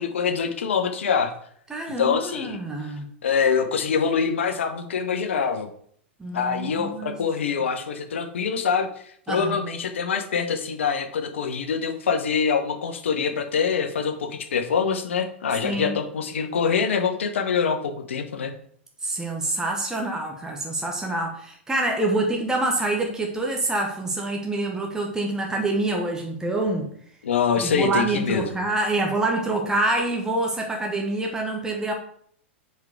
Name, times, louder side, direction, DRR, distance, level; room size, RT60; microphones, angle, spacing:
voice 1, 0.0-1.3 2.0-2.6 3.2-5.7 6.3-18.5 27.2-28.5, left 6 dB, 75° left, 7 dB, 0.9 m, -25 dB
voice 2, 1.7-3.1 6.2-7.2 9.3-9.6 15.6-15.9 19.0-26.9 27.6-31.9, right 2 dB, 10° right, 1 dB, 1.1 m, -26 dB
4.8 x 4.6 x 4.8 m, 0.63 s
hypercardioid pair, 105°, 7 cm